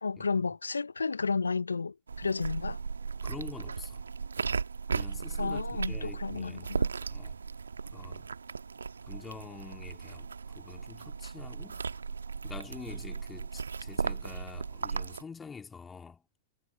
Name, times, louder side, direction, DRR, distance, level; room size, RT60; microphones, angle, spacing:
voice 1, 0.0-2.8 5.4-6.9, left 4 dB, 85° left, 0.8 m, -32 dB
sound 1, 2.1-15.2, right 5 dB, 80° right, 1.6 m, -36 dB
voice 2, 3.2-4.1 4.9-6.7 7.1-7.4 7.9-8.3 9.1-11.8 12.4-16.2, left 5 dB, 15° left, 3.3 m, -46 dB
figure-of-eight pair, 100°, 0 cm